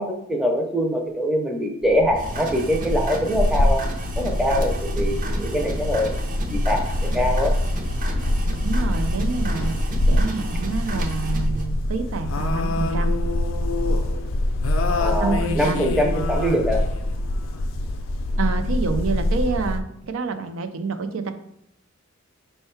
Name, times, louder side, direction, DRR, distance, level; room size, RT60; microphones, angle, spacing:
voice 1, 0.0-3.8 4.2-6.1 6.5-7.5 15.0-16.9, equal, ahead, 2 dB, 0.5 m, -23 dB
sound 1, 1.8-19.8, left 1 dB, 70° left, 0.4 m, -24 dB
sound 2, 2.1-11.6, right 2 dB, 40° right, 0.6 m, -34 dB
voice 2, 8.6-9.8 10.1-13.1 15.2-16.1 18.4-21.3, right 4 dB, 80° right, 8 dB, 0.5 m, -28 dB
5.4 x 2.2 x 4.4 m, 0.74 s
head